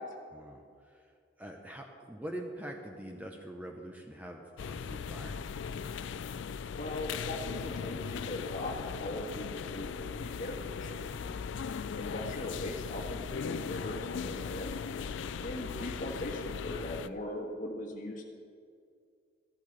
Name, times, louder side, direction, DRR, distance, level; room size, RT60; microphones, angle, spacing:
voice 1, 0.3-5.6 11.0-11.5 14.9-15.2, right 1 dB, 10° right, 2 dB, 0.7 m, -45 dB
sound 1, 4.6-17.1, left 6 dB, 85° left, 0.4 m, -38 dB
voice 2, 6.7-11.0 12.0-14.8 15.4-18.2, left 1 dB, 45° left, 0 dB, 1.5 m, -39 dB
14.0 x 12.0 x 3.3 m, 2.3 s
head